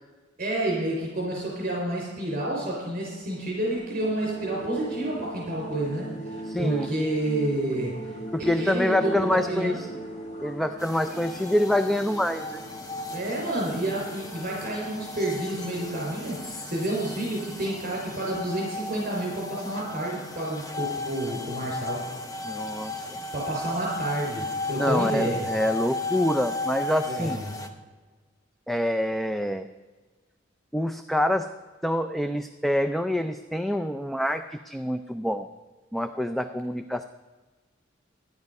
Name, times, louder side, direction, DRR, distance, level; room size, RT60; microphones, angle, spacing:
voice 1, 0.4-9.8 13.1-22.0 23.3-25.5 27.0-27.6, right 1 dB, 45° right, -3 dB, 4.9 m, -29 dB
sound 1, 4.0-16.4, right 2 dB, 40° left, 2.0 m, -39 dB
voice 2, 6.5-7.1 8.3-9.7 10.4-12.6 22.4-23.0 24.8-27.4 28.7-29.7 30.7-31.5 31.8-35.5 35.9-37.0, left 1 dB, ahead, 9 dB, 0.4 m, -26 dB
sound 2, 10.8-27.7, left 2 dB, 20° left, 1.0 m, -35 dB
14.0 x 10.5 x 5.3 m, 1.3 s
head